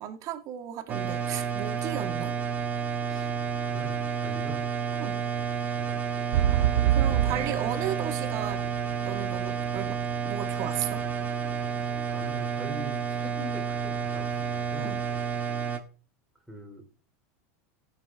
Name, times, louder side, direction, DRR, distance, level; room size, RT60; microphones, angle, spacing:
voice 1, 0.0-2.4 5.0-5.2 6.9-8.6 9.0-10.0 10.2-11.0 14.8-15.0, right 10 dB, 45° right, 2.2 m, -35 dB
sound 1, 0.9-15.8, right 7 dB, 20° right, 1.7 m, -30 dB
voice 2, 3.6-4.6 7.5-7.6 11.8-15.0 16.5-16.9, equal, ahead, 3.2 m, -43 dB
sound 2, 6.3-10.2 10.8-10.9, right 12 dB, 80° right, 0.7 m, -26 dB
15.5 x 6.1 x 3.7 m
supercardioid pair, 135°, 8 cm